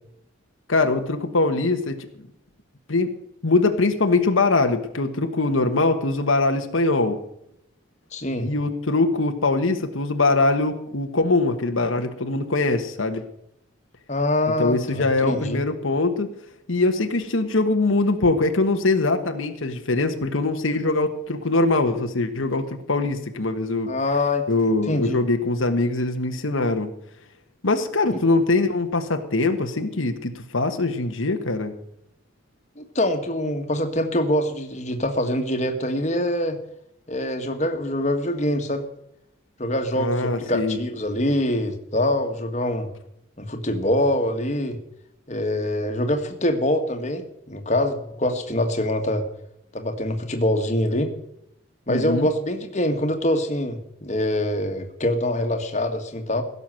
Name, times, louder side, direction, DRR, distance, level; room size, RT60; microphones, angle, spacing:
voice 1, 0.7-2.0 2.9-3.2 3.4-7.2 8.4-13.2 14.6-16.3 16.7-23.9 24.5-26.9 27.6-31.7 40.0-40.8 51.9-52.3, left 2 dB, 90° left, 7 dB, 1.4 m, -22 dB
voice 2, 8.1-8.5 14.1-15.6 23.9-24.5 24.9-25.2 28.1-28.2 32.8-36.6 37.1-38.9 39.6-42.9 43.4-44.8 45.3-49.3 49.7-51.1 51.9-56.4, left 1 dB, 35° left, 5 dB, 1.7 m, -24 dB
16.5 x 6.9 x 7.7 m, 0.78 s
head